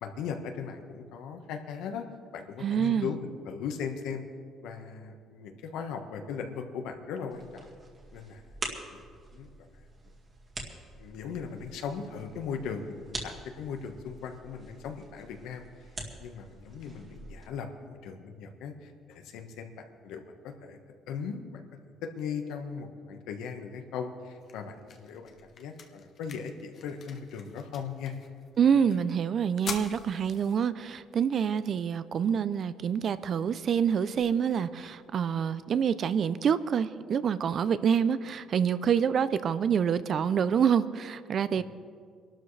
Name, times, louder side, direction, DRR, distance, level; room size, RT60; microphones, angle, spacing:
voice 1, 0.0-2.0 2.3-4.2 4.6-7.7 8.1-8.5 8.9-9.0 9.3-9.7 11.0-15.6 16.2-20.8 21.1-21.6 22.0-28.1 41.6-41.7, left 6 dB, 80° left, 5 dB, 1.3 m, -38 dB
voice 2, 2.6-3.1 28.6-41.6, right 7 dB, 40° right, 15 dB, 0.4 m, -27 dB
sound 1, 7.3-17.5, right 2 dB, 25° right, 2.0 m, -45 dB
sound 2, 23.9-35.9, left 6 dB, 40° left, 1.1 m, -48 dB
24.0 x 12.5 x 3.3 m, 2.1 s
cardioid pair, 150°, 0 cm